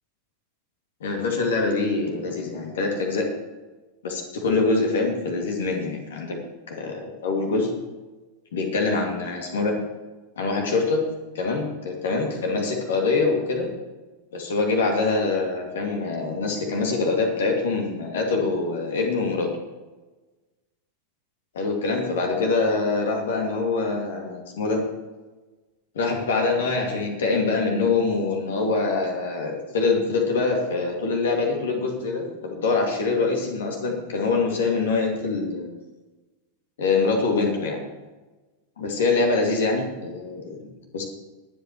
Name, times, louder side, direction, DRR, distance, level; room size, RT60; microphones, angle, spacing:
voice 1, 1.0-3.3 4.0-6.4 6.7-7.7 8.5-9.8 10.4-11.1 11.3-13.7 14.3-19.5 21.5-24.8 25.9-35.7 36.8-37.8 38.8-41.0, left 3 dB, 60° left, 1 dB, 2.4 m, -24 dB
22.0 x 8.2 x 3.2 m, 1.2 s
figure-of-eight pair, 90°, 0 cm